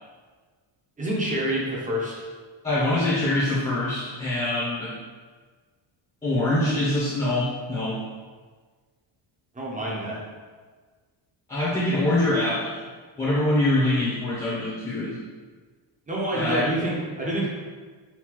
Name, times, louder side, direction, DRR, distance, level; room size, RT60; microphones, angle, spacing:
voice 1, 1.0-2.2 9.5-10.2 16.1-17.5, right 1 dB, 15° right, -4 dB, 0.8 m, -27 dB
voice 2, 2.6-4.9 6.2-8.0 11.5-12.8 13.2-15.2 16.3-16.7, left 1 dB, 15° left, -8 dB, 0.9 m, -24 dB
5.8 x 2.6 x 3.1 m, 1.5 s
cardioid pair, 165°, 48 cm